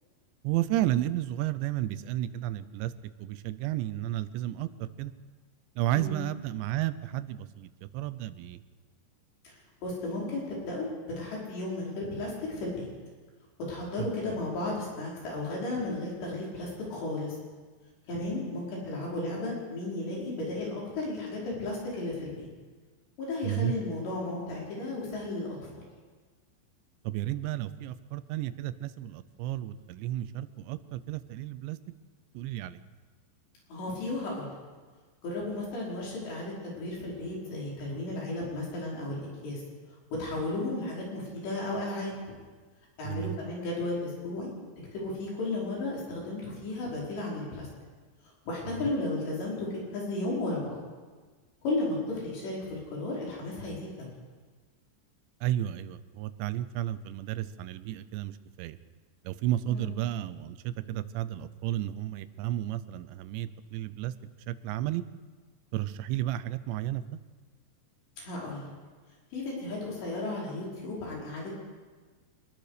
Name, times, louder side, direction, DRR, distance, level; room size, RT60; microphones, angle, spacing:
voice 1, 0.4-2.9 3.2-5.1 5.8-8.6 14.0-14.1 23.4-23.8 27.0-31.8 32.3-32.8 43.0-43.4 48.8-48.9 55.4-58.8 59.2-64.1 64.5-65.0 65.7-67.0, right 13 dB, 85° right, 13 dB, 3.0 m, -32 dB
voice 2, 9.4-12.9 13.7-17.4 18.1-22.5 23.2-25.8 33.7-34.5 35.2-39.6 40.2-42.1 43.0-44.5 44.9-47.7 48.5-50.8 51.6-54.1 59.7-59.9 68.2-68.6 69.3-71.7, left 2 dB, 70° left, -4 dB, 7.5 m, -34 dB
26.0 x 20.0 x 5.1 m, 1.4 s
omnidirectional pair, 5.1 m